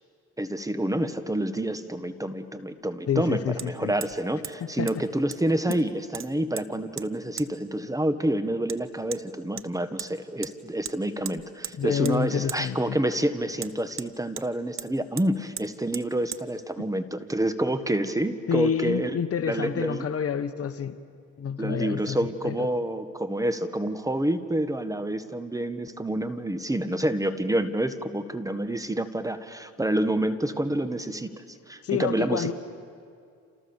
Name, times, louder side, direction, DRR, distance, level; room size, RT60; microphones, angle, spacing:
voice 1, 0.4-19.2 19.4-20.1 21.6-31.3 31.7-32.5, right 1 dB, 10° right, 11 dB, 1.5 m, -28 dB
voice 2, 3.1-3.9 4.8-4.9 5.6-5.7 11.8-13.0 18.5-21.0 21.4-22.2 22.4-22.5 31.8-32.5, left 7 dB, 50° left, 11 dB, 1.3 m, -28 dB
Hammer, 3.6-3.7 4.0-4.2 4.4-4.6 4.9-5.0 5.3-5.9 6.1-6.7 7.0-7.1 7.4-7.5 8.7-8.8 9.1-9.2 9.6-10.1 10.4-10.5 10.8-11.0 11.2-11.8 12.0-12.2 12.5-12.6 13.6-14.5 14.8-14.9 15.2-15.3 15.6-15.7 15.9-16.1 16.3-16.4, right 8 dB, 45° right, 1.1 m, -37 dB
28.5 x 28.5 x 7.2 m, 2.3 s
cardioid pair, 90°, 30 cm